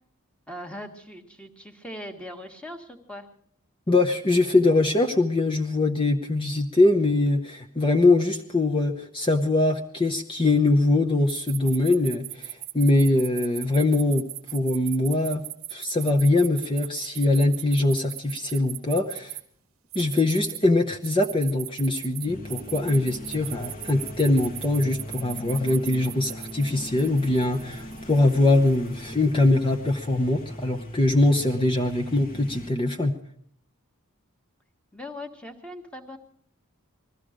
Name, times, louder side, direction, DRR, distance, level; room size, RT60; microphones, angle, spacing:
voice 1, 0.5-3.3 34.9-36.2, left 1 dB, 5° left, 4 dB, 1.6 m, -40 dB
voice 2, 3.9-14.3 14.5-15.4 15.7-19.4 19.9-33.1, left 2 dB, 25° left, 3 dB, 0.8 m, -22 dB
sound 1, 11.3-19.4 19.9-20.6 21.0-28.9, right 15 dB, 70° right, 0.9 m, -38 dB
sound 2, 22.3-32.7, left 1 dB, 40° left, 1.5 m, -40 dB
20.5 x 14.0 x 5.0 m, 0.64 s
head